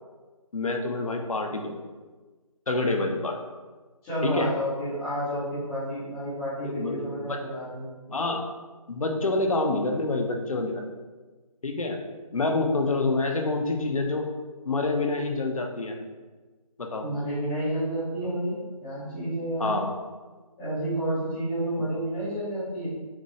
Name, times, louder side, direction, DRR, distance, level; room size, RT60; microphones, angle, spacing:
voice 1, 0.5-1.8 2.7-3.4 4.2-4.5 6.6-7.4 8.1-8.4 8.9-10.8 11.6-12.0 12.3-14.3 14.7-16.0 16.8-17.1 19.6-19.9, left 2 dB, 65° left, 4 dB, 0.7 m, -27 dB
voice 2, 4.0-7.9 17.0-19.8 20.6-22.9, right 1 dB, 5° left, -15 dB, 0.5 m, -30 dB
5.9 x 2.2 x 3.0 m, 1.3 s
figure-of-eight pair, 155°, 19 cm